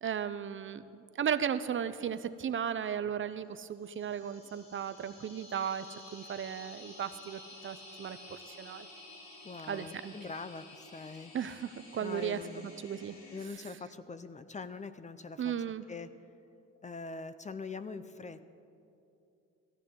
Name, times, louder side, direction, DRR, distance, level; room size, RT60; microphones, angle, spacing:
voice 1, 0.0-5.9 6.1-8.9 9.7-10.1 11.3-12.4 12.8-13.2 15.4-15.8, right 8 dB, 40° right, 12 dB, 0.5 m, -35 dB
sound 1, 3.7-13.5, left 2 dB, 75° left, 2.8 m, -52 dB
voice 2, 9.4-11.3 12.0-12.7 13.3-15.5 15.9-16.1 16.8-18.5, left 4 dB, 25° left, 12 dB, 0.5 m, -43 dB
16.5 x 14.5 x 3.7 m, 2.7 s
cardioid pair, 90°, 30 cm